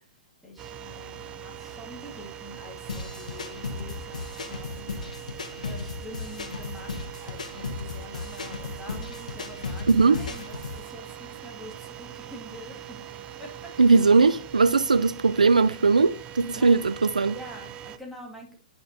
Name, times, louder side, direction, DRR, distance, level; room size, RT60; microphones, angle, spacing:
voice 1, 0.4-5.0 5.6-13.0 13.4-13.7 16.5-16.7 17.2-18.6, left 1 dB, ahead, 2.2 m, -45 dB
sound 1, 0.6-18.0, right 9 dB, 25° right, 0.5 m, -42 dB
sound 2, 2.9-10.8, left 4 dB, 80° left, 1.2 m, -36 dB
voice 2, 9.9-10.2 13.8-17.4, right 4 dB, 90° right, 0.4 m, -19 dB
10.5 x 5.4 x 2.8 m
hypercardioid pair, 120°, 4 cm